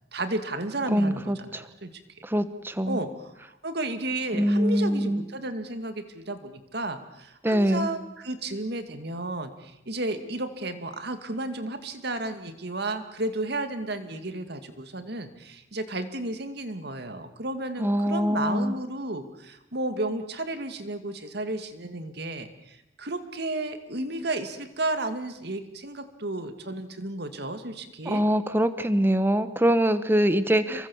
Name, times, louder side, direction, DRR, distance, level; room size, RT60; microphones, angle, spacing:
voice 1, 0.1-1.9 2.8-3.3 3.6-28.2, right 2 dB, 55° right, 8 dB, 2.3 m, -33 dB
voice 2, 0.9-1.6 2.2-3.0 4.3-5.3 7.4-7.9 17.8-18.7 28.0-30.9, equal, 10° right, 12 dB, 1.2 m, -24 dB
29.0 x 23.5 x 7.3 m, 0.91 s
head